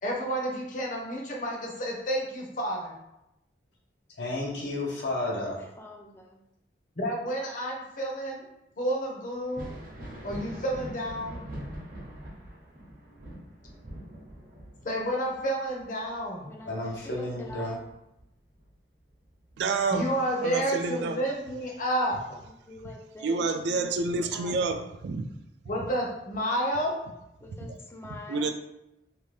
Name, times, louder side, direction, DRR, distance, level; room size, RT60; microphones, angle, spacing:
voice 1, 0.0-2.9 7.0-8.5 8.8-9.6 10.2-11.4 14.8-16.5 19.9-22.4 25.7-26.9, equal, 50° left, -1 dB, 0.6 m, -30 dB
voice 2, 4.2-5.6 16.7-17.8, left 1 dB, 85° left, -1 dB, 0.7 m, -32 dB
voice 3, 5.8-6.3 16.5-16.9 17.3-17.8 22.7-23.4 24.3-24.5 27.4-28.5, left 3 dB, 15° left, 1 dB, 0.3 m, -44 dB
Thunder, 9.4-18.7 19.1-20.3 21.9-22.0 22.8-22.9, equal, 55° right, 0.7 m, -43 dB
voice 4, 19.6-20.1 20.4-21.2 22.8-22.9 23.2-25.2 27.6-27.8 28.3-28.5, right 3 dB, 75° right, 7 dB, 0.3 m, -28 dB
2.7 x 2.2 x 3.1 m, 0.87 s
head